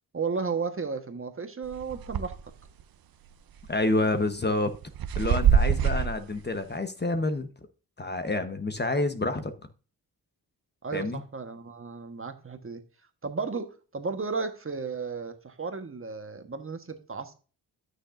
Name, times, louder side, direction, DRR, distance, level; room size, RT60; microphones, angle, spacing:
voice 1, 0.1-2.4 10.8-12.8 13.2-17.3, right 4 dB, 30° right, 1.4 m, -34 dB
sound 1, 1.7-2.4 2.8-2.9 3.6-3.9 4.5-6.2, right 8 dB, 60° right, 0.7 m, -24 dB
voice 2, 3.7-4.7 5.1-7.5 8.0-9.5 10.9-11.2, left 2 dB, 25° left, 1.1 m, -28 dB
12.5 x 6.5 x 2.6 m
cardioid pair, 70°, 40 cm